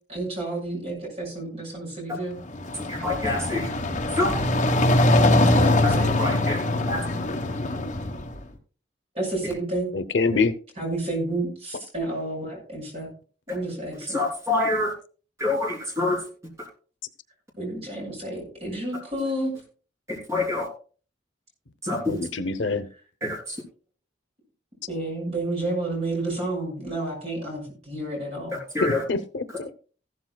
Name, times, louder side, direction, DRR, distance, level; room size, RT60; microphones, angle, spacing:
voice 1, 0.1-2.4 5.1-6.3 9.1-9.9 10.8-13.1 13.5-14.2 17.6-19.5 24.9-28.6, right 2 dB, 35° right, 0 dB, 6.3 m, -30 dB
sound 1, 2.4-8.4, left 1 dB, 40° left, 1.3 m, -22 dB
voice 2, 2.9-3.7 4.2-4.3 5.8-6.6 6.9-7.0 14.1-14.9 15.4-16.2 20.1-20.7 21.8-22.2 23.2-23.6 28.7-29.0, left 2 dB, 15° right, -1 dB, 3.5 m, -26 dB
voice 3, 9.9-10.5 22.1-22.9 28.8-29.8, left 4 dB, 85° left, 12 dB, 0.8 m, -25 dB
14.5 x 12.5 x 2.3 m, 0.39 s
head